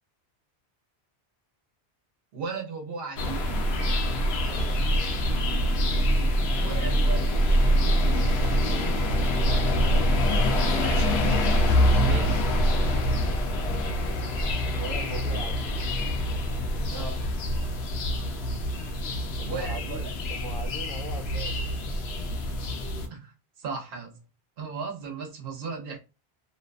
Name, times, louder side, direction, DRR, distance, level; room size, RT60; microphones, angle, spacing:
voice 1, 2.3-3.7 6.6-7.3 10.6-11.5 12.0-12.4 16.9-17.2 19.5-20.1 23.1-23.3 23.6-24.2 24.6-26.0, right 5 dB, 65° right, 0.9 m, -36 dB
sound 1, 3.2-23.1, equal, 75° left, 0.8 m, -25 dB
voice 2, 4.4-5.0 8.7-9.2 14.7-15.7 16.2-17.3 19.4-21.8, equal, 25° left, 0.5 m, -41 dB
Bass guitar, 9.4-15.7, left 8 dB, 25° right, 1.0 m, -42 dB
2.6 x 2.2 x 2.4 m
omnidirectional pair, 1.1 m